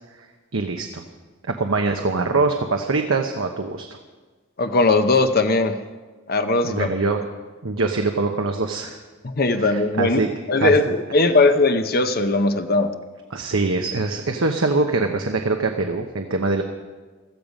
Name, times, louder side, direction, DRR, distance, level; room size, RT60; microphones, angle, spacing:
voice 1, 0.5-1.0 1.5-3.9 6.6-7.2 7.6-9.0 9.6-10.3 10.6-11.3 13.3-16.6, right 3 dB, 75° right, 4 dB, 1.0 m, -23 dB
voice 2, 4.6-5.8 6.3-6.9 9.2-10.2 10.5-12.9, left 3 dB, 45° left, 8 dB, 0.8 m, -19 dB
16.5 x 14.0 x 5.3 m, 1.3 s
head